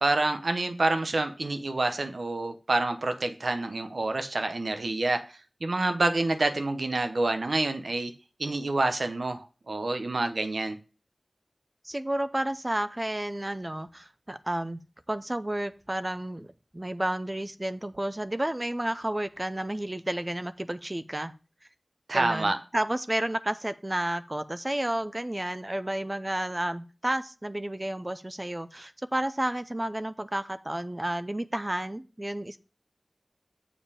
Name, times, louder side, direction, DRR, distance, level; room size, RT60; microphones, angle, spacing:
voice 1, 0.0-5.2 5.6-8.1 8.4-10.8 22.1-22.6, right 2 dB, 80° right, 7 dB, 0.8 m, -27 dB
voice 2, 11.8-14.8 15.1-21.3 22.1-32.6, right 1 dB, 30° right, 11 dB, 0.5 m, -31 dB
7.2 x 5.0 x 4.8 m, 0.34 s
wide cardioid pair, 50°, 0 cm